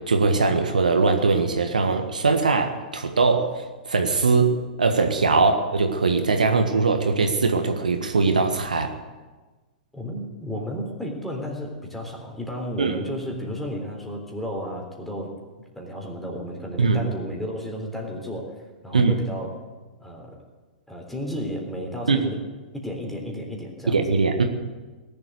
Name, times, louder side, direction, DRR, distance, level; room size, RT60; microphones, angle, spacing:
voice 1, 0.0-8.9 12.8-12.9 16.8-17.0 18.9-19.1 22.1-22.2 23.9-24.4, right 4 dB, 70° right, 5 dB, 1.6 m, -21 dB
voice 2, 9.9-15.3 15.7-19.6 20.0-20.4 20.9-22.4 22.7-24.0, equal, 5° left, 0 dB, 3.6 m, -33 dB
19.5 x 7.8 x 9.6 m, 1.3 s
figure-of-eight pair, 105°, 4 cm